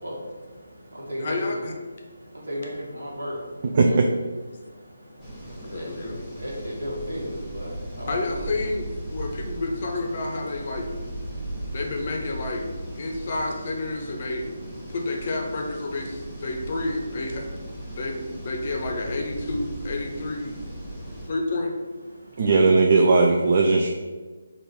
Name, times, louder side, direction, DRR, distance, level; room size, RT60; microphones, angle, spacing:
voice 1, 0.0-4.1 4.4-8.5 9.0-9.6 10.5-10.8 11.2-11.8 12.6-13.3 14.0-14.9 16.1-16.8 17.3-18.3 20.1-21.3 22.1-22.7 23.6-23.9, equal, 70° right, -3 dB, 1.4 m, -39 dB
voice 2, 1.2-1.8 5.7-6.2 8.1-10.9 11.7-12.7 13.0-17.7 18.0-20.6 21.3-21.7, left 2 dB, 40° left, 1 dB, 0.6 m, -30 dB
voice 3, 3.8-4.1 22.4-23.9, right 3 dB, 40° right, 2 dB, 0.3 m, -18 dB
sound 1, 5.2-21.3, right 1 dB, 5° right, 1.1 m, -37 dB
3.9 x 2.5 x 4.6 m, 1.4 s
figure-of-eight pair, 150°, 0 cm